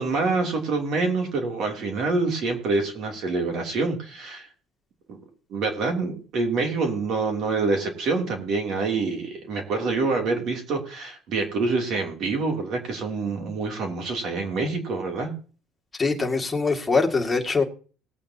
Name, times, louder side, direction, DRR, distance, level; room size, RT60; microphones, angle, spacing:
voice 1, 0.0-4.5 5.1-5.2 5.5-15.3, right 3 dB, 55° right, 2 dB, 2.9 m, -26 dB
voice 2, 16.0-17.6, left 4 dB, 15° left, 1 dB, 2.1 m, -23 dB
20.0 x 8.5 x 2.8 m, 0.39 s
cardioid pair, 110°, 0 cm